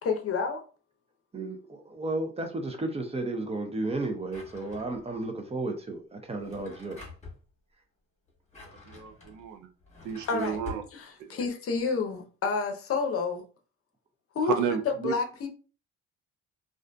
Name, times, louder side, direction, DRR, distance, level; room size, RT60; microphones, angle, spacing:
voice 1, 0.0-0.6 10.3-10.6 10.9-13.4 14.3-15.5, left 4 dB, 50° left, 0.6 m, -29 dB
voice 2, 1.3-7.0, right 2 dB, 20° right, 0.5 m, -33 dB
Drawer open or close, 4.3-5.2 6.3-7.4 8.3-10.9, left 3 dB, 25° left, 1.1 m, -47 dB
voice 3, 8.6-9.7 10.0-10.8 11.3-11.4 14.5-15.1, right 7 dB, 75° right, 0.5 m, -32 dB
2.5 x 2.4 x 2.2 m
cardioid pair, 90°, 30 cm